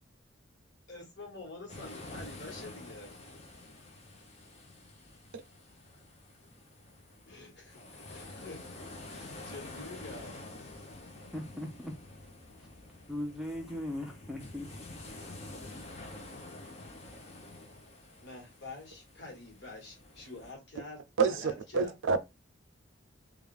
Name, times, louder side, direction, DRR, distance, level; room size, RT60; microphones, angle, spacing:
voice 1, 0.9-3.1 7.2-10.4 18.2-21.9, left 2 dB, 60° left, 1.6 m, -47 dB
sound 1, 1.7-20.5, left 2 dB, 35° left, 0.7 m, -48 dB
voice 2, 11.3-11.9 13.1-14.9, left 1 dB, ahead, 0.6 m, -38 dB
voice 3, 21.2-22.2, right 5 dB, 75° right, 0.4 m, -28 dB
3.3 x 2.4 x 3.3 m
head